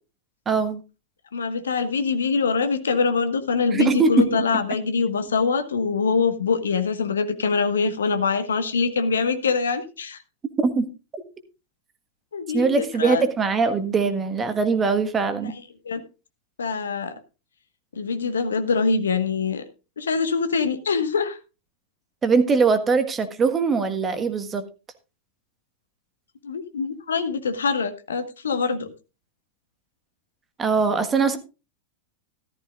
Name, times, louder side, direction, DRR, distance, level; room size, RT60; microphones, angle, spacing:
voice 1, 0.4-0.8 3.7-4.4 10.6-10.9 12.5-15.5 22.2-24.6 30.6-31.4, right 4 dB, 20° right, 9 dB, 1.4 m, -21 dB
voice 2, 1.3-10.2 12.3-13.2 15.8-16.0 16.6-17.1 18.0-19.6 20.0-21.4 26.4-28.9, left 5 dB, 70° left, 10 dB, 1.4 m, -24 dB
14.0 x 13.5 x 2.4 m, 0.30 s
figure-of-eight pair, 90°, 0 cm